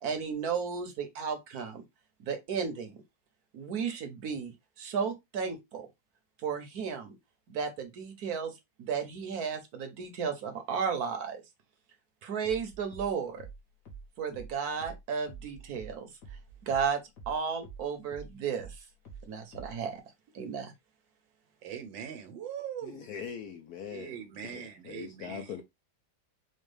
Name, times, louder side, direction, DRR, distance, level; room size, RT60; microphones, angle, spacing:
voice 1, 0.0-1.8 2.2-3.0 3.5-4.5 4.8-5.9 6.4-7.1 7.5-8.5 8.8-11.4 12.2-13.5 14.2-16.1 16.7-17.0 17.3-18.8 19.3-20.0 20.3-20.7, right 6 dB, 60° right, 1.2 m, -33 dB
sound 1, 12.4-17.4 17.6-19.9, right 4 dB, 50° left, 1.3 m, -47 dB
voice 2, 21.6-23.1 23.9-25.5, right 9 dB, 85° right, 1.6 m, -41 dB
voice 3, 22.8-25.6, left 7 dB, 70° left, 0.9 m, -42 dB
4.4 x 2.3 x 3.2 m
omnidirectional pair, 2.0 m